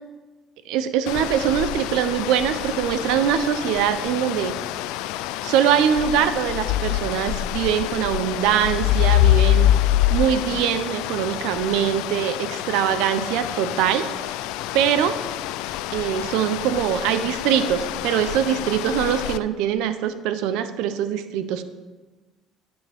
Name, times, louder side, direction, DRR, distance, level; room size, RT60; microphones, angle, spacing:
voice 1, 0.7-4.6 5.4-9.7 10.1-14.4 14.7-15.2 15.9-21.6, right 9 dB, 85° right, 11 dB, 0.7 m, -23 dB
sound 1, 1.1-19.4, left 13 dB, 85° left, 0.3 m, -26 dB
10.5 x 9.1 x 3.5 m, 1.2 s
supercardioid pair, 90°, 0 cm